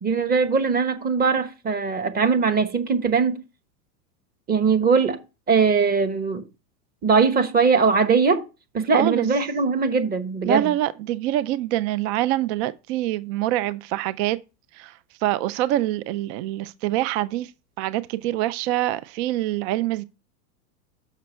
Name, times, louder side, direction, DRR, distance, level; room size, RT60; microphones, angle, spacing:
voice 1, 0.0-3.4 4.5-5.2 5.5-6.4 7.0-8.4 8.7-10.7, right 5 dB, 20° right, 1.0 m, -20 dB
voice 2, 8.9-9.3 10.4-14.4 14.7-17.5 17.8-20.0, right 14 dB, 45° right, 0.5 m, -25 dB
6.7 x 6.1 x 4.3 m
hypercardioid pair, 125°, 49 cm